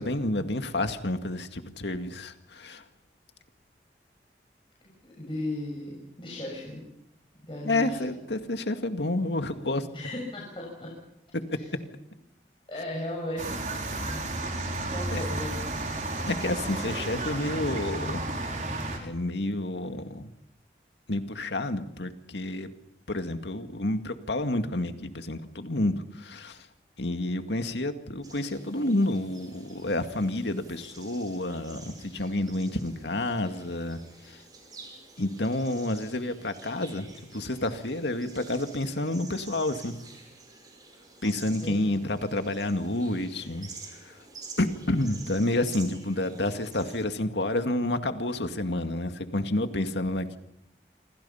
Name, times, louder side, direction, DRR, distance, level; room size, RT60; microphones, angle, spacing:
voice 1, 0.0-2.8 7.6-9.9 11.5-11.6 15.1-15.2 16.3-18.3 19.0-20.3 21.1-22.7 23.1-26.7 27.0-34.4 35.2-40.0 41.2-44.2 44.6-50.4, left 1 dB, 85° left, 7 dB, 2.1 m, -29 dB
voice 2, 4.8-6.9 7.5-8.2 9.9-10.9 11.5-11.7 12.7-13.6 14.9-15.6 41.6-41.9, left 1 dB, 30° left, -3 dB, 6.8 m, -36 dB
sound 1, 13.4-19.0, right 2 dB, 45° right, 5.0 m, -32 dB
sound 2, 28.2-47.0, right 4 dB, 20° right, 5.8 m, -49 dB
28.0 x 25.5 x 5.8 m, 0.77 s
head